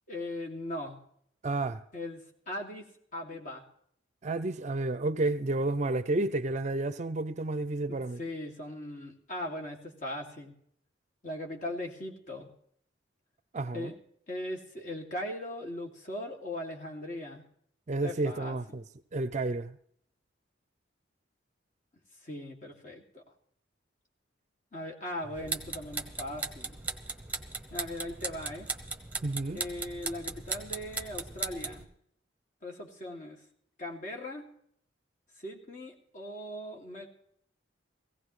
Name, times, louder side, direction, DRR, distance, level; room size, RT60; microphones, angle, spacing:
voice 1, 0.1-1.0 1.9-2.2 2.5-3.6 8.2-10.5 11.2-12.5 13.7-13.9 14.3-17.4 18.0-18.6 22.2-23.2 24.7-26.8 27.7-28.7 29.5-31.9 32.6-33.4 33.8-34.5 35.4-37.1, left 1 dB, 45° left, 2.5 m, -39 dB
voice 2, 1.4-1.8 4.2-8.2 13.5-13.9 17.9-18.8 19.1-19.8 29.2-29.6, right 2 dB, 35° right, 0.5 m, -31 dB
sound 1, 25.4-31.8, right 4 dB, 10° right, 1.1 m, -38 dB
17.5 x 16.5 x 3.2 m
head